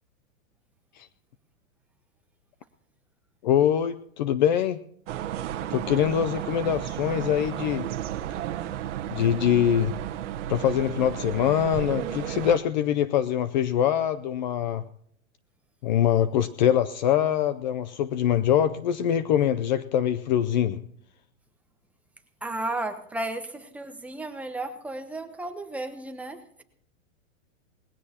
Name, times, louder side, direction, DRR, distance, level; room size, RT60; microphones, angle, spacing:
voice 1, 3.4-4.8 5.7-7.9 9.1-9.9 10.5-14.8 15.8-20.8, left 10 dB, 35° left, 14 dB, 0.5 m, -23 dB
sound 1, 5.1-12.6, right 12 dB, 60° right, 1.2 m, -33 dB
voice 2, 22.4-26.6, right 2 dB, 5° right, 5 dB, 0.8 m, -34 dB
20.0 x 16.5 x 2.9 m, 0.67 s
hypercardioid pair, 155°, 40 cm